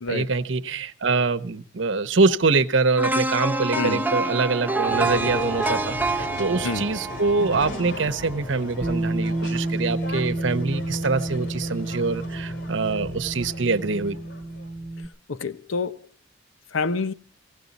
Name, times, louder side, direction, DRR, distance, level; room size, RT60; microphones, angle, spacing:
voice 1, 0.1-14.2, right 3 dB, 70° right, 0.9 m, -24 dB
sound 1, 3.0-9.0 9.4-9.5, right 2 dB, 10° right, 0.7 m, -27 dB
sound 2, 4.9-14.9, left 2 dB, 65° left, 3.1 m, -37 dB
Bass guitar, 8.8-15.1, right 2 dB, 35° right, 1.1 m, -30 dB
voice 2, 15.3-16.0 16.7-17.1, left 4 dB, 85° left, 0.7 m, -27 dB
17.5 x 17.5 x 4.1 m
head